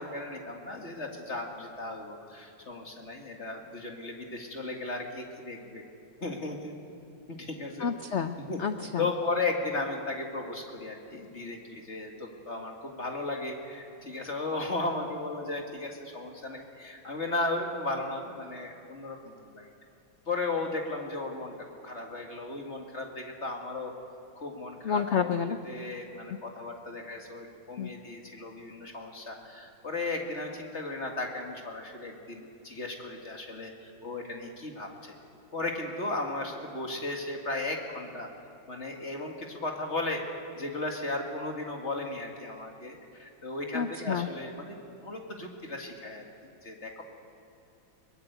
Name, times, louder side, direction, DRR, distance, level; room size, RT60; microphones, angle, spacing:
voice 1, 0.0-5.8 6.2-6.7 7.3-7.9 8.5-8.6 9.0-19.7 20.3-21.5 21.8-23.9 24.4-35.1 35.5-38.3 38.7-40.2 40.6-46.2 46.6-47.0, left 2 dB, 35° left, 2 dB, 2.3 m, -35 dB
voice 2, 7.8-9.0 24.8-25.6 27.8-27.9 43.7-44.3, left 7 dB, 75° left, 9 dB, 0.6 m, -29 dB
22.5 x 19.5 x 8.1 m, 2.7 s
omnidirectional pair, 2.1 m